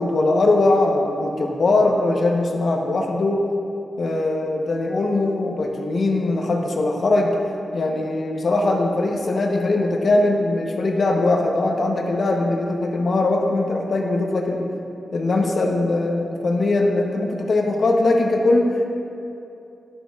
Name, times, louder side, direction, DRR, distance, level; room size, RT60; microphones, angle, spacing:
voice 1, 0.0-3.5 4.0-7.4 7.7-14.7 15.1-18.9, left 2 dB, 55° left, 1 dB, 0.8 m, -21 dB
12.0 x 6.2 x 2.4 m, 2.7 s
wide cardioid pair, 115°, 0 cm